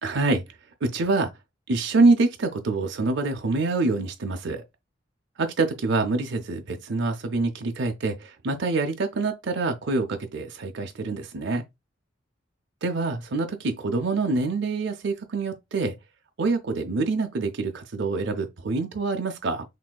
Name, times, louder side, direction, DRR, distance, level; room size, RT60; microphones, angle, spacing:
voice 1, 0.0-0.4 0.8-1.3 1.7-4.6 5.4-11.6 12.8-16.0 16.4-19.6, right 3 dB, 65° right, 0.6 m, -25 dB
6.0 x 2.7 x 2.3 m
head